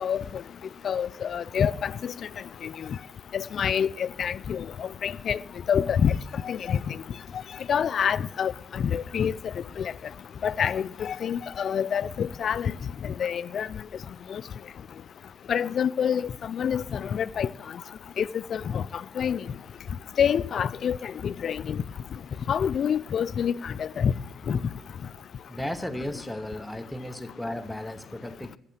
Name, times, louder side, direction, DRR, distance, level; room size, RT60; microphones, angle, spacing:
voice 1, 0.8-2.1 2.6-2.7 3.3-5.4 5.7-6.1 6.4-7.0 7.7-9.3 9.8-9.9 10.4-12.7 13.2-13.7 14.3-14.4 15.5-17.5 18.2-18.8 19.2-19.4 20.2-21.8 22.5-24.1 24.5-24.6, left 8 dB, 55° left, 0.4 m, -27 dB
voice 2, 25.5-28.6, left 1 dB, 5° left, 0.9 m, -35 dB
14.0 x 6.6 x 7.5 m
cardioid pair, 90°, 0 cm